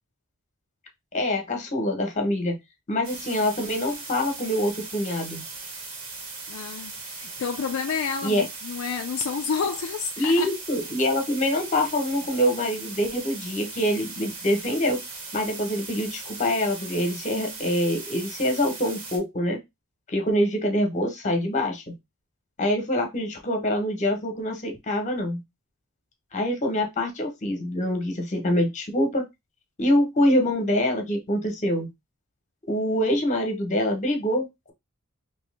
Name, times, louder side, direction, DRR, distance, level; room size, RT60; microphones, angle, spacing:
voice 1, 1.1-2.6 2.9-5.4 8.2-8.5 10.2-15.0 15.3-19.6 20.1-21.8 22.6-25.4 26.3-29.3 29.8-31.9 32.7-34.7, left 1 dB, 35° left, 1.1 m, -25 dB
sound 1, 3.0-19.2, right 3 dB, 75° right, 1.7 m, -39 dB
voice 2, 6.5-10.5, left 6 dB, 65° left, 0.4 m, -30 dB
3.0 x 2.9 x 3.3 m
head